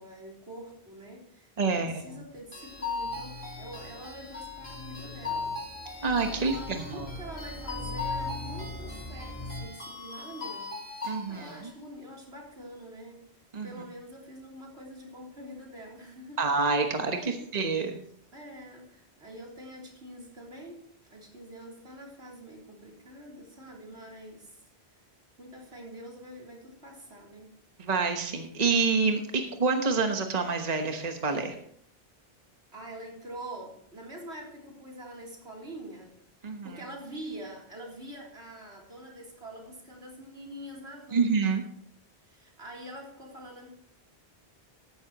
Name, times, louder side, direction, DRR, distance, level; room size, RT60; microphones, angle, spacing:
voice 1, 0.0-5.6 5.9-13.3 13.6-16.4 17.1-17.5 18.3-24.6 25.4-27.5 28.6-28.7 29.3-29.6 32.7-36.2 36.6-41.2 42.2-43.7, right 1 dB, 85° right, -2 dB, 3.7 m, -45 dB
voice 2, 1.6-2.2 6.0-7.1 11.0-11.5 13.5-13.7 16.4-18.0 27.8-31.5 36.4-36.8 41.1-41.6, right 4 dB, 40° right, 4 dB, 1.3 m, -27 dB
sound 1, 2.2-9.7, left 1 dB, 30° left, 2.9 m, -42 dB
sound 2, 2.5-11.6, left 4 dB, 55° left, 3.5 m, -38 dB
14.0 x 11.5 x 3.0 m, 0.66 s
omnidirectional pair, 1.1 m